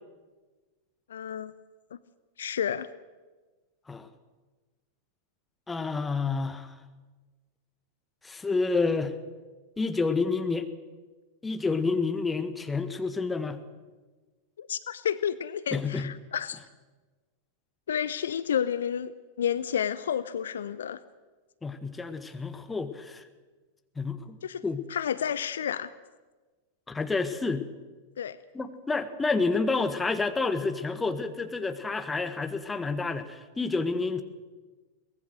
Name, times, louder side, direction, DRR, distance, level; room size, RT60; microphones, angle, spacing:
voice 1, 1.1-1.5 1.9-2.0 2.4-2.9 14.6-16.6 17.9-21.0 24.4-24.6 24.9-25.9 28.2-28.4, left 8 dB, 65° left, 16 dB, 0.6 m, -30 dB
voice 2, 5.7-6.7 8.2-9.1 9.8-10.7 11.4-13.6 15.7-16.1 21.6-23.2 24.0-24.4 24.6-24.8 26.9-27.6 28.5-34.2, left 4 dB, 10° left, 9 dB, 1.5 m, -29 dB
23.0 x 19.0 x 6.5 m, 1.3 s
figure-of-eight pair, 90°, 0 cm